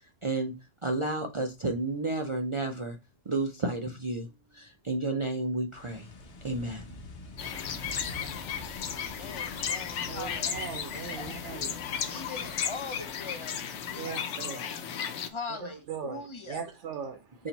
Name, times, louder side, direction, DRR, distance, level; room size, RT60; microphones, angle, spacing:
voice 1, 0.2-0.5 0.8-3.0 3.3-4.3 4.5-6.1 6.4-6.8 17.4-17.5, right 2 dB, 40° right, 0.4 m, -31 dB
sound 1, 5.7-14.4, left 1 dB, 60° left, 1.1 m, -47 dB
sound 2, 7.4-15.3, left 8 dB, 85° left, 1.0 m, -35 dB
voice 2, 9.2-10.5 10.9-13.6 13.8-14.7 15.3-16.6, left 4 dB, 35° left, 0.5 m, -42 dB
voice 3, 10.1-11.8 14.0-14.7 15.6-17.4, right 7 dB, 80° right, 0.9 m, -39 dB
4.4 x 2.8 x 3.9 m
omnidirectional pair, 1.2 m